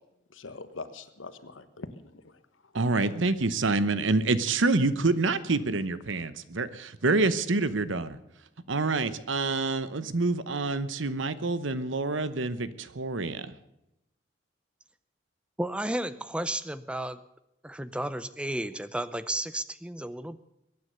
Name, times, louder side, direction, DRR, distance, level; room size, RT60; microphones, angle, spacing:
voice 1, 0.3-2.3 2.7-2.8 3.2-3.3, left 3 dB, 90° left, 12 dB, 1.3 m, -43 dB
voice 2, 2.7-8.2 8.7-13.5, right 3 dB, 80° right, 14 dB, 1.0 m, -27 dB
voice 3, 15.6-17.2 17.6-20.4, right 1 dB, 5° right, 14 dB, 0.5 m, -33 dB
22.0 x 9.6 x 6.7 m, 0.85 s
head